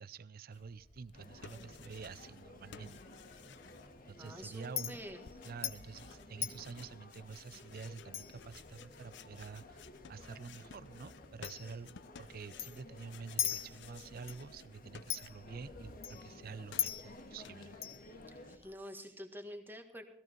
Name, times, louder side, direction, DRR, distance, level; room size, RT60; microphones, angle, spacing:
voice 1, 0.0-3.0 4.1-5.0 5.4-9.8 10.1-17.7, right 5 dB, 50° right, 17 dB, 0.5 m, -48 dB
Chink clink, 0.5-18.7, left 9 dB, 35° left, 1.2 m, -45 dB
sound 1, 1.1-2.5 2.7-15.7 15.9-17.8, left 7 dB, 65° left, 0.5 m, -57 dB
sound 2, 1.1-18.6, left 2 dB, 50° left, 1.8 m, -55 dB
voice 2, 4.2-5.3 18.3-20.0, equal, 10° right, 6 dB, 1.7 m, -48 dB
16.5 x 15.0 x 4.5 m, 0.69 s
head